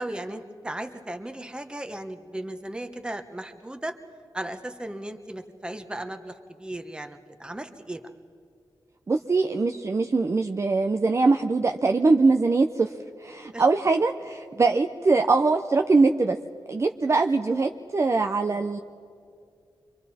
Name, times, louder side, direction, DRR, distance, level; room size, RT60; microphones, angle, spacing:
voice 1, 0.0-3.9 4.3-8.0 13.5-13.6 18.5-18.6, right 1 dB, 10° right, 7 dB, 1.1 m, -36 dB
voice 2, 9.1-12.9 13.2-16.4 16.7-18.8, right 3 dB, 35° right, 4 dB, 0.6 m, -22 dB
29.5 x 24.0 x 4.3 m, 2.3 s
wide cardioid pair, 110°, 8 cm